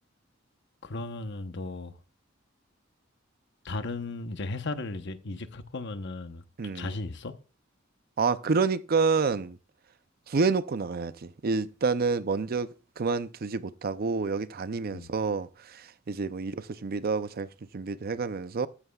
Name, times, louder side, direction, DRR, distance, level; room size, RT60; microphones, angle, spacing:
voice 1, 0.8-2.0 3.6-7.3 14.9-15.1, left 2 dB, 60° left, 1.0 m, -36 dB
voice 2, 6.6-6.9 8.2-9.6 10.3-12.7 13.0-17.5 17.7-18.7, right 4 dB, 50° right, 0.5 m, -28 dB
14.0 x 11.5 x 2.3 m
head